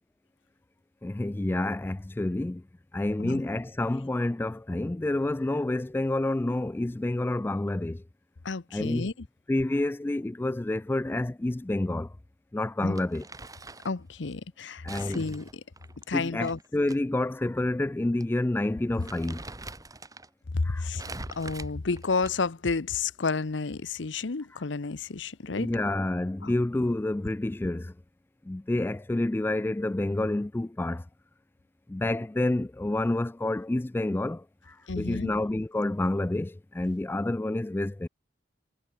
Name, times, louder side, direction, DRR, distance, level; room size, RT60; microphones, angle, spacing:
voice 1, 1.0-2.6 2.9-8.0 8.7-9.1 9.5-12.1 12.5-13.3 14.8-15.3 16.1-19.4 20.6-20.9 24.5-24.6 25.5-27.9 28.4-31.1 31.9-38.1, left 1 dB, 10° left, 0.3 m, -29 dB
voice 2, 8.4-9.1 12.8-13.0 13.8-15.5 16.1-16.6 20.5-21.0 21.3-25.7 26.4-26.5 34.9-35.3, left 4 dB, 75° left, 0.8 m, -31 dB
Crumpling crinkling, 13.0-14.0 14.9-17.0 17.3-17.4 18.2-18.4 18.7-20.3 21.0-22.6, right 2 dB, 20° right, 3.8 m, -43 dB
head